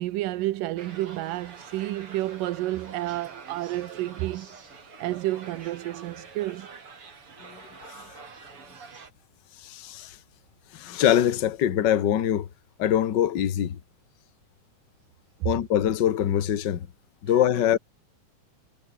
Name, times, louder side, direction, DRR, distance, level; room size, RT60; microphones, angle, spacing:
voice 1, 0.0-4.5 5.0-6.8 15.4-15.5 17.3-17.4, right 16 dB, 90° right, 2.5 m, -30 dB
sound 1, 0.8-9.1, right 5 dB, 40° right, 4.1 m, -46 dB
voice 2, 7.5-8.0 9.6-10.2 10.7-12.5 12.8-13.8 15.4-16.9 17.2-17.8, left 10 dB, 50° left, 1.3 m, -24 dB
omnidirectional pair, 3.8 m